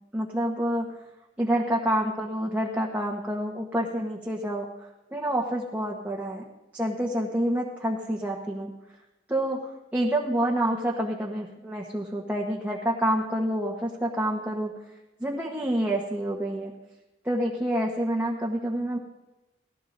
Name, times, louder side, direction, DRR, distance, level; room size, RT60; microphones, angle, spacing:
voice 1, 0.1-1.0 1.4-6.4 6.7-8.7 9.3-14.7 15.2-16.7 17.2-19.0, right 1 dB, 10° right, -2 dB, 1.2 m, -28 dB
19.0 x 15.5 x 2.7 m, 1.0 s
head